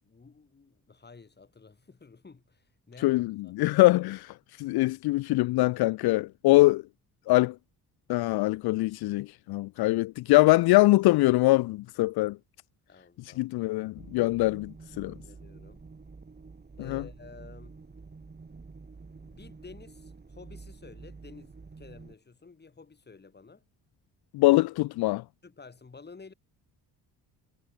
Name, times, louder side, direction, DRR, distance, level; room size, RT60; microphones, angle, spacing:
voice 1, 0.0-3.8 12.9-13.5 15.0-15.8 16.8-17.8 19.1-23.6 25.4-26.3, left 4 dB, 25° left, 4.7 m, -52 dB
voice 2, 3.0-6.8 7.3-7.5 8.1-12.4 13.4-15.1 16.9-17.0 24.3-25.2, left 19 dB, 75° left, 0.5 m, -23 dB
sound 1, 14.0-22.2, right 4 dB, 25° right, 7.4 m, -48 dB
cardioid pair, 110°, 38 cm